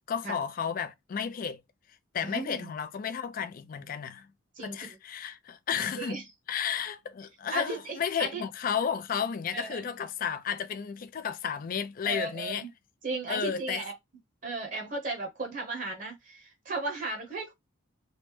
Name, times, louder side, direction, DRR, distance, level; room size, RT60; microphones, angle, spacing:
voice 1, 0.0-1.6 2.1-4.3 4.6-6.2 6.5-12.7 13.3-13.8, left 7 dB, 40° left, 0.3 m, -33 dB
voice 2, 2.2-2.7 4.6-4.9 5.9-6.2 7.5-8.4 9.5-9.8 12.0-12.7 13.0-13.9 14.4-17.5, right 3 dB, 40° right, 0.7 m, -35 dB
3.2 x 2.0 x 3.0 m
head